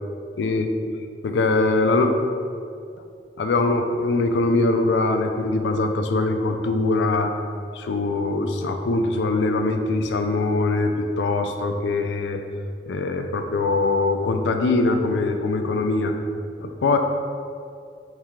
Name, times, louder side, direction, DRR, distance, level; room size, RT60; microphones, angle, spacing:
voice 1, 0.4-0.7 1.2-2.1 3.4-7.3 7.7-12.4 12.9-16.1 16.6-17.0, left 3 dB, 80° left, 5 dB, 0.4 m, -22 dB
3.6 x 2.8 x 4.4 m, 2.3 s
head